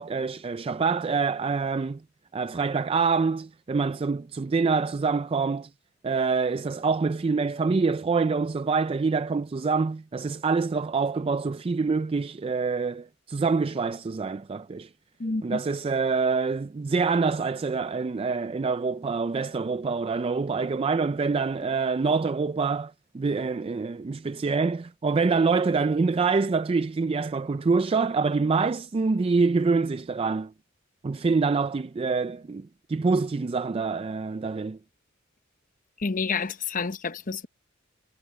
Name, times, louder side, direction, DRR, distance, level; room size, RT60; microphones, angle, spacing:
voice 1, 0.0-2.0 2.3-5.7 6.0-14.9 15.4-30.5 31.0-34.8, right 4 dB, 30° right, 0.4 m, -26 dB
voice 2, 15.2-15.6 36.0-37.5, left 4 dB, 45° left, 0.9 m, -29 dB
head